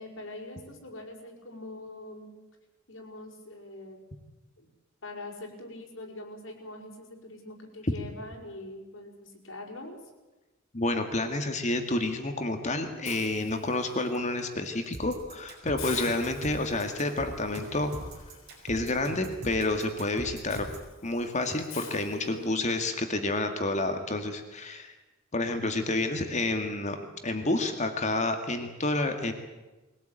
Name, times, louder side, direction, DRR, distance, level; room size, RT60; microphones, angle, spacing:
voice 1, 0.0-2.4 2.9-4.0 4.6-4.7 5.0-10.0 12.5-12.9 22.2-22.7, left 1 dB, 70° left, 0 dB, 5.5 m, -43 dB
voice 2, 10.7-18.1 18.7-20.7 21.0-24.9 25.3-27.0 27.2-29.3, left 2 dB, 35° left, 6 dB, 2.0 m, -29 dB
Hiss, 13.1-14.2 14.6-14.9 15.2-15.3 15.8-22.8, left 6 dB, 90° left, 3.5 m, -47 dB
sound 1, 14.9-20.9, right 1 dB, 55° right, 5.4 m, -41 dB
22.5 x 17.0 x 9.0 m, 1.1 s
head